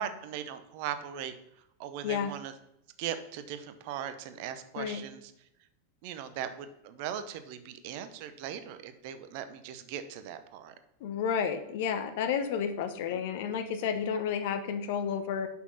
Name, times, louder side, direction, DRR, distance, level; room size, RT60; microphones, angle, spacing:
voice 1, 0.0-1.4 1.8-2.5 3.0-5.3 6.0-10.7 13.1-13.2, right 9 dB, 45° right, 10 dB, 0.7 m, -39 dB
voice 2, 11.0-15.5, left 7 dB, 50° left, 8 dB, 0.9 m, -31 dB
6.1 x 5.7 x 5.6 m, 0.81 s
figure-of-eight pair, 90°, 0 cm